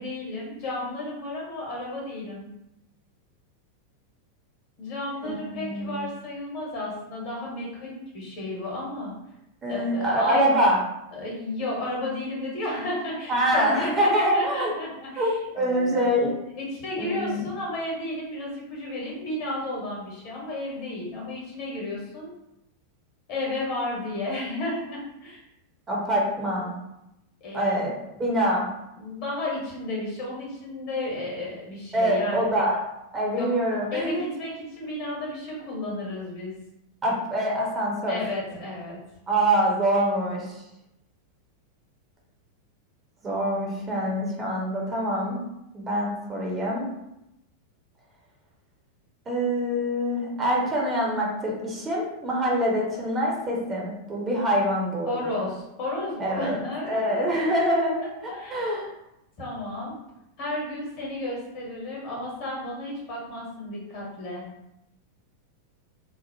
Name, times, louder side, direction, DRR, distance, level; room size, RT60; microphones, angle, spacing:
voice 1, 0.0-2.5 4.8-9.1 9.7-10.5 11.1-16.1 16.5-22.3 23.3-25.4 27.4-27.9 29.0-32.4 33.4-33.5 33.9-36.5 38.1-39.0 55.1-57.4 58.3-58.7 59.4-59.9 60.4-64.5, left 1 dB, 45° left, -4 dB, 1.2 m, -33 dB
voice 2, 5.2-6.0 9.6-10.8 13.3-14.7 15.2-15.3 15.6-16.3 17.0-17.4 25.9-26.7 27.5-27.9 28.2-28.7 31.9-32.8 33.1-34.2 37.0-38.2 39.3-40.6 43.2-45.4 45.7-46.9 49.3-55.2 56.2-56.6 56.8-58.0 58.5-58.9, equal, 20° right, -3 dB, 0.7 m, -25 dB
2.9 x 2.0 x 2.7 m, 0.86 s
figure-of-eight pair, 90°, 0 cm